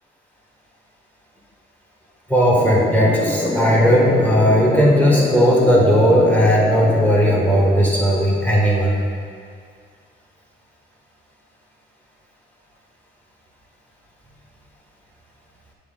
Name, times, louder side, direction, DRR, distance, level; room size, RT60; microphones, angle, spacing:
voice 1, 2.3-9.0, equal, 10° left, -4 dB, 1.7 m, -16 dB
sound 1, 2.5-8.6, left 1 dB, 25° left, 1.0 m, -25 dB
8.9 x 3.8 x 4.0 m, 2.1 s
cardioid pair, 90°, 20 cm